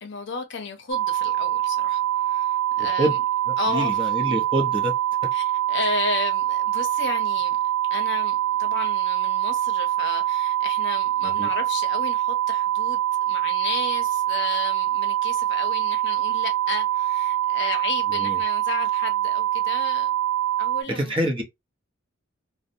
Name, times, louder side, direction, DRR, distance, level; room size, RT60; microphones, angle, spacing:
voice 1, 0.0-3.2 3.6-4.0 4.3-4.4 5.3-7.6 7.9-20.1 20.6-21.2, left 4 dB, 60° left, 0.6 m, -33 dB
sound 1, 0.9-20.8, right 12 dB, 75° right, 0.4 m, -24 dB
voice 2, 2.8-3.1 3.5-4.9 11.2-11.5 18.1-18.4 20.9-21.4, right 1 dB, 25° right, 0.7 m, -26 dB
2.6 x 2.1 x 2.6 m
head